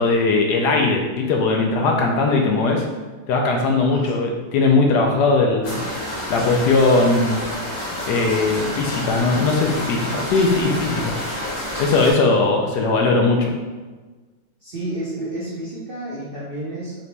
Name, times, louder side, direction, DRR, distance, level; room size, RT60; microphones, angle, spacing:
voice 1, 0.0-2.8 3.3-5.8 6.3-7.4 8.1-11.2 11.8-13.5, left 3 dB, 75° left, 1 dB, 1.1 m, -19 dB
sound 1, 5.6-12.1, left 1 dB, 50° left, 1.2 m, -29 dB
voice 2, 14.6-17.0, right 1 dB, 55° right, -8 dB, 0.6 m, -31 dB
4.0 x 2.9 x 3.3 m, 1.3 s
omnidirectional pair, 2.0 m